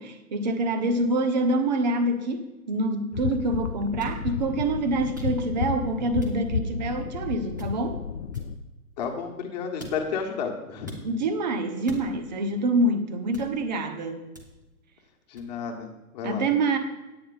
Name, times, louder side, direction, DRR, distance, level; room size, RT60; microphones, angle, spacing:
voice 1, 0.0-8.0 11.0-14.2 16.2-16.8, right 2 dB, 30° right, 7 dB, 0.9 m, -26 dB
sound 1, 3.1-8.6, left 6 dB, 50° left, 0.6 m, -32 dB
sound 2, 4.0-4.2 5.2-5.6 6.2-6.6 7.6-7.9 8.3-9.4 9.8-10.2 10.9-11.1 11.9-12.4 13.3-13.8 14.4-14.7 15.4-15.6, left 2 dB, 15° right, 0.4 m, -45 dB
voice 2, 9.0-10.9 15.3-16.5, left 6 dB, 30° left, 2 dB, 1.3 m, -32 dB
9.7 x 8.8 x 4.0 m, 1.1 s
hypercardioid pair, 145°, 45 cm